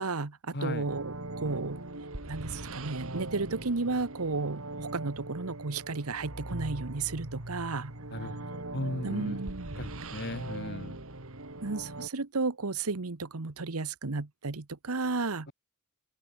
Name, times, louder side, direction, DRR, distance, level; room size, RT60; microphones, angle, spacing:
voice 1, 0.0-1.8 2.3-7.9 9.0-9.8 11.6-15.5, right 3 dB, 90° right, 1.2 m, -33 dB
voice 2, 0.5-0.9 8.1-9.4 9.8-11.0, left 1 dB, 50° left, 2.9 m, -37 dB
sound 1, 0.8-12.1, right 2 dB, 65° right, 2.9 m, -40 dB
open air
head